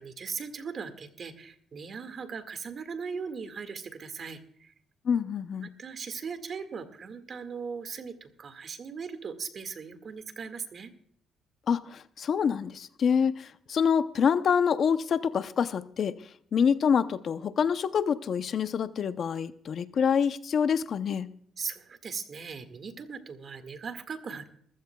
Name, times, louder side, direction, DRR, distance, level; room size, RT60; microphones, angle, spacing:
voice 1, 0.0-4.7 5.6-10.9 21.6-24.5, right 5 dB, 50° right, 8 dB, 1.9 m, -39 dB
voice 2, 5.0-5.7 11.7-16.1 16.5-21.3, left 7 dB, 55° left, 12 dB, 0.7 m, -26 dB
21.5 x 15.0 x 2.3 m, 0.63 s
cardioid pair, 90°, 0 cm